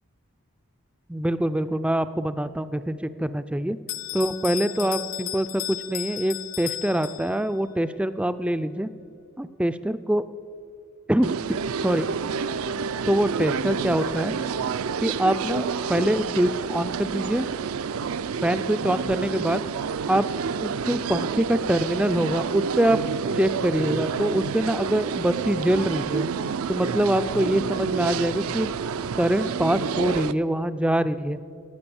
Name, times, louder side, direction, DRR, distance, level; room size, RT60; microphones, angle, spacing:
voice 1, 1.1-3.8 4.1-8.9 9.4-10.2 11.1-11.3 11.8-12.1 13.1-14.3 15.0-17.5 18.4-19.6 20.1-20.3 20.6-23.0 23.3-26.3 26.7-28.7 29.2-31.4, right 1 dB, 5° right, 12 dB, 0.3 m, -24 dB
Bell, 3.9-7.6, left 12 dB, 70° left, 0.6 m, -34 dB
sound 1, 11.2-30.3, right 6 dB, 70° right, 0.4 m, -29 dB
18.0 x 7.7 x 7.0 m, 2.4 s
head